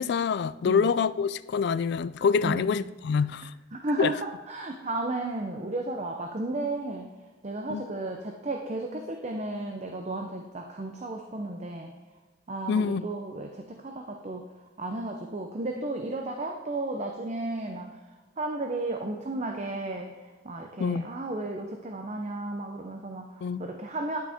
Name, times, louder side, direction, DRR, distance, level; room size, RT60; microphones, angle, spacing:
voice 1, 0.0-3.5 4.0-4.1 7.7-7.8 12.7-13.0 20.8-21.1 23.4-23.6, left 6 dB, 55° left, 15 dB, 0.3 m, -26 dB
voice 2, 2.4-2.8 3.7-7.1 7.4-11.9 12.5-14.5 14.8-18.0 18.4-24.2, right 2 dB, 35° right, 3 dB, 0.6 m, -34 dB
10.5 x 6.2 x 3.5 m, 1.3 s
head